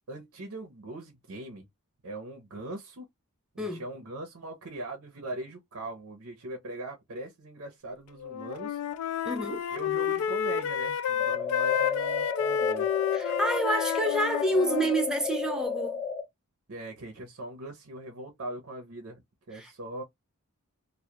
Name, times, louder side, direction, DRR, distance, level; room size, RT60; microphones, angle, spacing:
voice 1, 0.1-1.7 2.0-3.1 3.5-8.8 9.7-12.9 16.7-20.0, right 1 dB, 60° right, 0.6 m, -41 dB
Wind instrument woodwind instrument, 8.2-15.0, left 8 dB, 75° left, 0.3 m, -30 dB
voice 2, 9.3-9.7 13.1-16.0 19.5-19.7, right 1 dB, 5° right, 0.4 m, -28 dB
sound 1, 11.2-16.2, left 6 dB, 15° left, 0.9 m, -32 dB
2.3 x 2.1 x 2.8 m
head